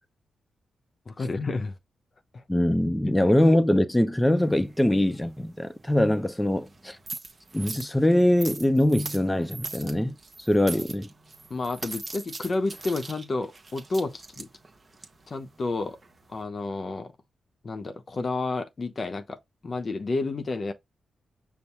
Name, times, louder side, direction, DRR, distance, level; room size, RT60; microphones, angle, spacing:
voice 1, 1.1-1.7 2.3-2.4 3.1-3.2 11.5-14.5 15.3-16.0 16.3-17.1 17.6-20.7, left 3 dB, 50° left, 0.8 m, -30 dB
voice 2, 2.5-7.0 7.5-11.1, left 1 dB, 10° left, 0.7 m, -23 dB
sound 1, 4.4-16.4, right 3 dB, 40° right, 1.0 m, -42 dB
5.4 x 2.2 x 4.3 m
supercardioid pair, 45°, 0 cm